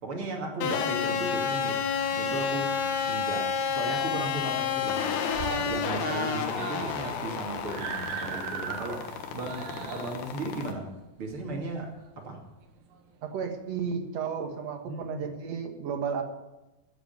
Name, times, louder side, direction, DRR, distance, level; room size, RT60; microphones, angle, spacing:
voice 1, 0.0-1.8 2.1-2.7 3.0-5.1 5.5-10.9 11.2-12.4 14.8-15.3, right 2 dB, 40° right, 1 dB, 2.9 m, -36 dB
sound 1, 0.6-10.7, left 7 dB, 90° left, 3.3 m, -30 dB
Screaming, 2.7-3.3 3.6-3.7 4.0-4.1 4.4-4.9 5.2-12.1 12.9-13.0, right 6 dB, 85° right, 3.3 m, -39 dB
voice 2, 13.2-16.2, right 6 dB, 55° right, 4 dB, 2.3 m, -33 dB
14.0 x 8.1 x 9.1 m, 1.0 s
omnidirectional pair, 4.3 m